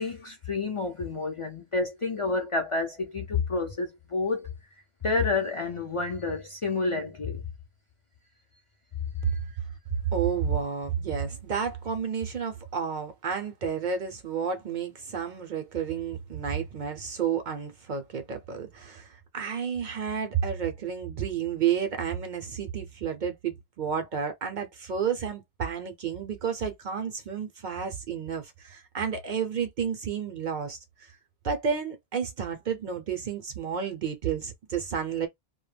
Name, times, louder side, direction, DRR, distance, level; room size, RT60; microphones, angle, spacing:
voice 1, 0.0-4.5 5.0-7.4, left 3 dB, 40° left, 0.5 m, -29 dB
voice 2, 10.1-31.1 31.4-35.3, right 7 dB, 55° right, 0.6 m, -31 dB
2.1 x 2.1 x 3.2 m
omnidirectional pair, 1.1 m